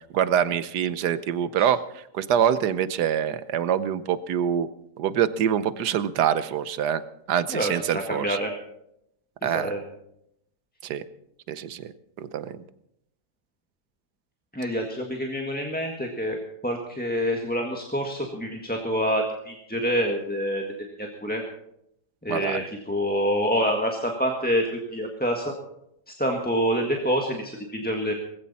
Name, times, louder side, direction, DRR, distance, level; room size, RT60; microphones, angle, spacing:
voice 1, 0.1-4.7 5.0-7.0 7.3-8.4 9.4-9.7 10.8-11.0 11.5-11.9 12.2-12.6 22.3-22.7, right 9 dB, 80° right, 14 dB, 1.4 m, -25 dB
voice 2, 7.5-7.8 8.1-8.5 9.4-9.8 14.5-16.4 16.6-20.6 21.0-21.4 22.2-25.5 26.1-28.1, equal, 5° left, 1 dB, 1.5 m, -27 dB
19.0 x 16.0 x 4.2 m, 0.77 s
omnidirectional pair, 1.7 m